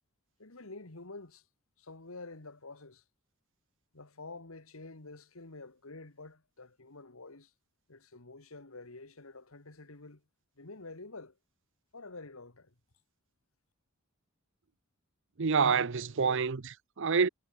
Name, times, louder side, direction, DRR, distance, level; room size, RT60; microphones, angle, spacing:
voice 1, 0.4-1.4 1.8-3.0 3.9-7.5 7.9-10.2 10.6-11.4 11.9-12.7, left 3 dB, 80° left, 2.1 m, -48 dB
voice 2, 15.4-17.3, right 5 dB, 65° right, 0.8 m, -27 dB
head